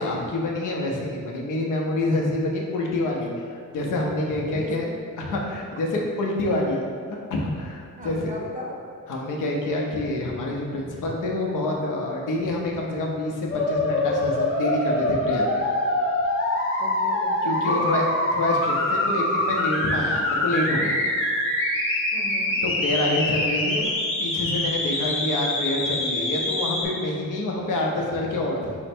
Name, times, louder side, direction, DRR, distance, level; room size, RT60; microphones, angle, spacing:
voice 1, 0.0-4.8 5.2-8.3 9.1-15.5 17.4-18.1 18.3-21.0 22.6-23.9 24.2-28.8, left 1 dB, 80° left, -1 dB, 0.8 m, -27 dB
voice 2, 8.0-8.7 16.8-17.8 22.1-22.6 23.7-23.9, equal, 25° right, -2 dB, 0.6 m, -37 dB
sound 1, 13.5-26.8, left 1 dB, 45° left, 0.7 m, -24 dB
5.6 x 2.1 x 4.3 m, 2.1 s
wide cardioid pair, 180°, 31 cm